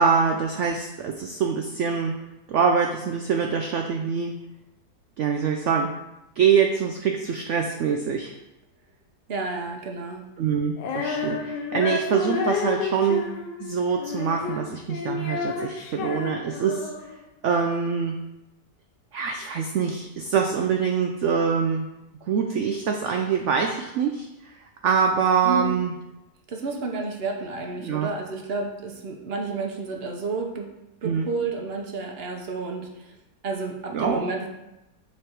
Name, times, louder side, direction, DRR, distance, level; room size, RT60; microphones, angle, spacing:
voice 1, 0.0-2.1 2.5-4.3 5.2-5.9 6.4-8.3 10.4-13.3 13.6-16.9 17.4-18.2 19.1-21.8 22.2-24.6 24.8-25.9 27.8-28.1 31.0-31.3 33.9-34.3, right 6 dB, 90° right, 3 dB, 0.6 m, -24 dB
voice 2, 9.3-10.2 25.4-25.7 26.5-30.7 31.0-33.2 33.4-34.5, right 3 dB, 50° right, 2 dB, 0.8 m, -31 dB
Female singing, 10.8-17.2, left 5 dB, 80° left, 1.4 m, -30 dB
6.9 x 3.4 x 4.4 m, 0.93 s
omnidirectional pair, 1.8 m